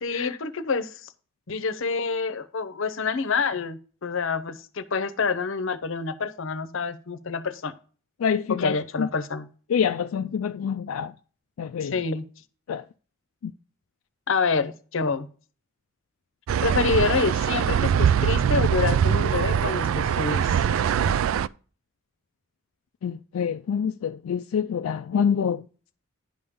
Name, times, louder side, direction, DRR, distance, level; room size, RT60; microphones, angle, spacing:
voice 1, 0.0-1.1 1.5-7.7 8.5-9.5 11.9-12.2 14.3-15.3 16.6-20.6, left 4 dB, 65° left, 0.7 m, -27 dB
voice 2, 8.2-9.1 9.7-11.1 11.6-12.0 12.7-12.8 13.4-13.5 23.0-25.6, left 7 dB, 85° left, 0.4 m, -26 dB
sound 1, 16.5-21.5, right 8 dB, 70° right, 0.3 m, -22 dB
10.5 x 3.6 x 6.9 m
head